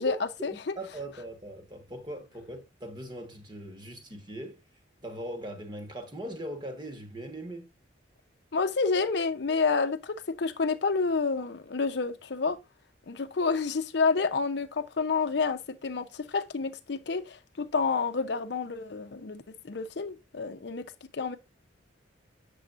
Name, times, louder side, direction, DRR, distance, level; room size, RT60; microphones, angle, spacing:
voice 1, 0.0-0.7 8.5-12.6 13.1-20.8 21.1-21.4, left 4 dB, 60° left, 0.6 m, -29 dB
voice 2, 0.5-4.6 5.0-7.7, right 1 dB, 25° right, 1.2 m, -40 dB
8.1 x 6.8 x 2.4 m
head